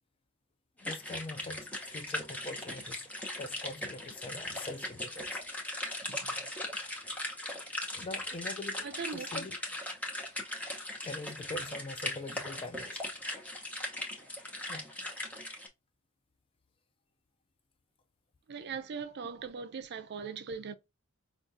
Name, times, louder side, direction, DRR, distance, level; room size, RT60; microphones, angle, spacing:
voice 1, 0.8-3.1 3.4-5.4 7.9-9.6 10.6-13.1 14.7-14.9, left 2 dB, 25° left, 0.4 m, -43 dB
sound 1, 0.8-15.7, left 1 dB, 5° left, 0.8 m, -39 dB
voice 2, 8.8-9.3 18.5-20.7, right 6 dB, 50° right, 0.5 m, -40 dB
5.0 x 2.4 x 2.6 m
head